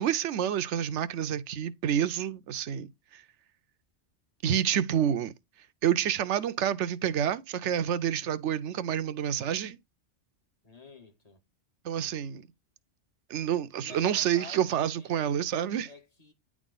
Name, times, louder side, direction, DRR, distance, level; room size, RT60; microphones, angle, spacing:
voice 1, 0.0-3.2 4.4-5.3 5.8-9.8 11.8-12.4 13.3-15.9, right 9 dB, 75° right, 0.9 m, -28 dB
voice 2, 10.6-11.4 13.8-15.4 15.9-16.3, left 3 dB, 35° left, 1.4 m, -50 dB
9.7 x 3.7 x 3.9 m
omnidirectional pair, 1.3 m